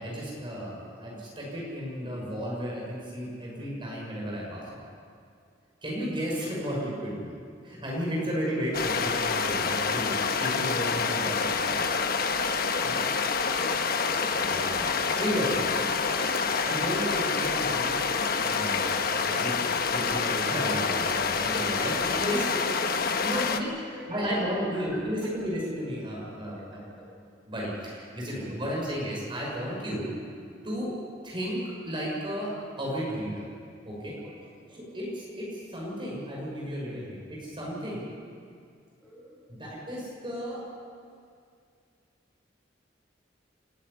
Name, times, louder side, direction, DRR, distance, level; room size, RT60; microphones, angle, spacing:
voice 1, 0.0-4.8 5.8-7.3 7.6-11.9 12.8-13.0 14.4-16.2 16.6-18.0 18.4-19.6 19.9-23.7 24.1-26.8 27.5-30.1 30.6-30.9 31.2-31.6 31.8-32.5 32.8-33.4 33.8-34.1 34.7-38.0 39.5-40.6, equal, 25° right, -4 dB, 6.1 m, -33 dB
sound 1, 8.7-23.6, left 5 dB, 55° left, 1.1 m, -27 dB
voice 2, 10.6-11.4 13.1-14.3 23.3-24.4 24.7-25.3 26.5-27.1 28.3-28.5 34.2-34.3 34.7-34.8 39.0-39.3, left 1 dB, ahead, -6 dB, 6.2 m, -45 dB
27.5 x 12.0 x 9.7 m, 2.3 s
head